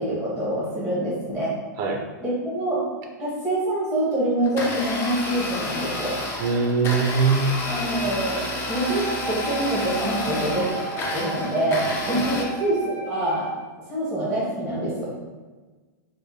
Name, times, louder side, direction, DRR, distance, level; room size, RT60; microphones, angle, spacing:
voice 1, 0.0-1.5 2.2-2.8 3.2-6.2 7.7-10.7 11.1-13.5 13.9-15.1, right 1 dB, 5° left, -8 dB, 1.0 m, -25 dB
Domestic sounds home sounds, 4.4-12.4, left 2 dB, 20° left, 0.5 m, -30 dB
voice 2, 6.4-7.6 12.1-12.3, right 4 dB, 35° right, 2 dB, 0.4 m, -22 dB
Wind instrument woodwind instrument, 8.7-13.6, right 2 dB, 65° left, 0.7 m, -34 dB
4.6 x 2.1 x 2.7 m, 1.3 s
hypercardioid pair, 140°, 11 cm